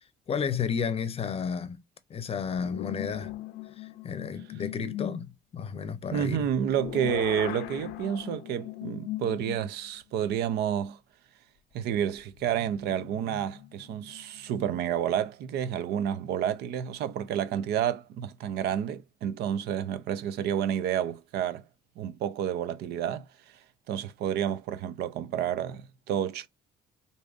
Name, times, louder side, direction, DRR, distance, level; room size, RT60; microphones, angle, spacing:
voice 1, 0.3-1.8 2.1-3.3 3.8-6.5, left 6 dB, 35° left, 0.6 m, -32 dB
sound 1, 2.6-5.2 6.2-9.9 10.4-10.5 12.3-14.8, left 15 dB, 80° left, 0.5 m, -39 dB
voice 2, 6.1-11.0 11.7-21.6 22.0-23.6 23.9-26.5, right 9 dB, 75° right, 0.6 m, -30 dB
4.7 x 2.7 x 2.4 m
cardioid pair, 110°, 17 cm